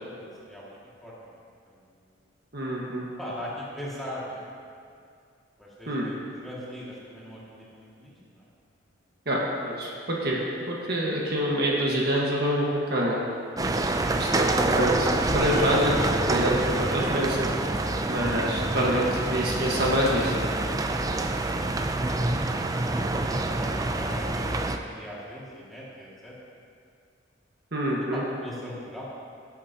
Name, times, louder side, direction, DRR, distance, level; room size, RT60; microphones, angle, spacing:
voice 1, 0.2-1.4 1.7-1.8 3.2-4.5 5.6-8.5 21.6-26.3 28.1-29.0, equal, ahead, -8 dB, 2.1 m, -41 dB
voice 2, 2.5-3.1 5.9-6.1 9.2-9.4 9.6-13.2 14.1-16.0 16.3-17.5 18.1-20.3 27.7-28.2, equal, 55° right, -3 dB, 1.5 m, -26 dB
sound 1, 13.6-24.8, right 2 dB, 20° right, 0.4 m, -26 dB
17.0 x 8.7 x 2.9 m, 2.4 s
head